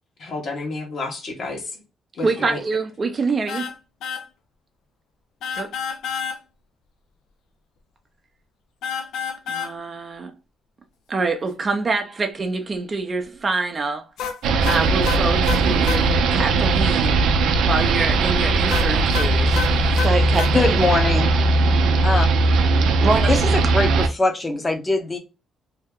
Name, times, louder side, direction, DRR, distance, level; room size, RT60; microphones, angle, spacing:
voice 1, 0.2-1.8 2.2-2.6, left 3 dB, 60° left, 1.2 m, -30 dB
voice 2, 2.2-3.7 5.6-5.7 9.5-10.3 11.1-14.0 14.6-17.2 17.6-19.6 20.0-20.7 23.0-23.3, right 3 dB, 35° right, 0.6 m, -25 dB
sound 1, 3.5-3.7 4.0-4.2 5.4-6.4 8.8-9.7 14.2-16.0 18.7-20.5, left 7 dB, 80° left, 0.5 m, -29 dB
sound 2, 14.4-24.1, right 3 dB, 85° right, 0.4 m, -19 dB
voice 3, 20.5-21.3 22.0-22.3 23.3-25.2, left 2 dB, 20° left, 0.8 m, -22 dB
2.8 x 2.1 x 3.6 m
cardioid pair, 90°, 0 cm